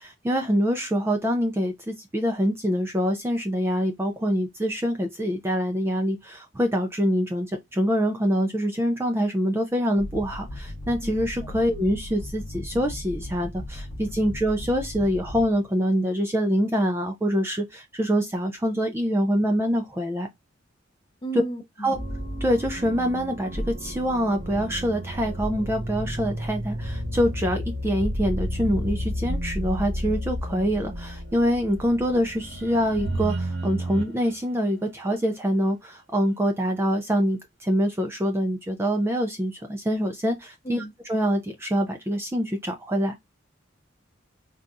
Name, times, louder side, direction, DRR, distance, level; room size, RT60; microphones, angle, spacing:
voice 1, 0.0-20.3 21.8-22.0 22.4-40.8 41.1-43.3, equal, 10° right, 0.3 m, -25 dB
sound 1, 10.0-15.8, left 1 dB, 65° left, 0.7 m, -37 dB
voice 2, 21.2-22.0 40.6-40.9, right 3 dB, 25° left, 0.6 m, -34 dB
sound 2, 21.9-34.2, equal, 85° right, 1.3 m, -31 dB
4.0 x 2.3 x 2.4 m
head